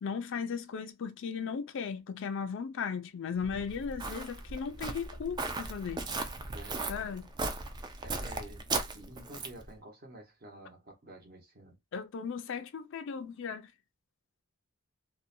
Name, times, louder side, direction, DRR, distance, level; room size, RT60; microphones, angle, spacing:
voice 1, 0.0-6.1 6.9-7.3 11.9-13.7, left 6 dB, 60° left, 0.4 m, -36 dB
Walk footsteps, 3.4-9.7, right 3 dB, 20° right, 0.3 m, -37 dB
voice 2, 6.4-7.2 8.0-11.8, right 1 dB, 50° right, 1.0 m, -50 dB
2.6 x 2.1 x 2.6 m
head